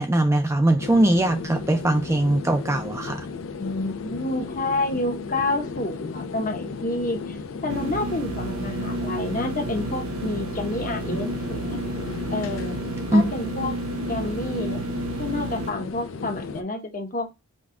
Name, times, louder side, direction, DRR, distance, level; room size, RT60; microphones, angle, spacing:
voice 1, 0.0-3.3 13.1-13.2, right 1 dB, 15° right, 0.4 m, -21 dB
sound 1, 0.8-16.6, left 4 dB, 70° left, 0.5 m, -35 dB
voice 2, 3.6-11.8 12.3-12.8 13.1-13.8 14.1-14.8 15.2-17.3, left 2 dB, 40° left, 0.8 m, -29 dB
sound 2, 7.7-15.7, right 2 dB, 90° right, 0.6 m, -31 dB
5.2 x 2.3 x 3.7 m
head